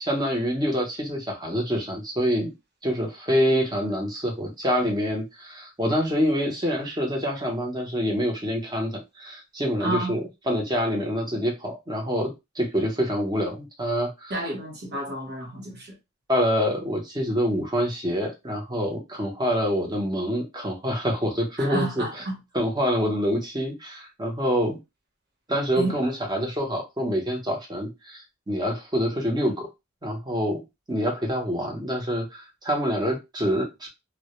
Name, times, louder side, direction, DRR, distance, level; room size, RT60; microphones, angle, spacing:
voice 1, 0.0-2.5 2.8-14.3 16.3-22.2 22.5-24.8 25.5-29.7 30.0-30.6 30.9-33.9, equal, 20° right, 0.7 m, -26 dB
voice 2, 9.8-10.2 14.3-16.0 21.6-22.4 25.8-26.0, right 2 dB, 50° right, 0.9 m, -30 dB
2.1 x 2.1 x 2.9 m
head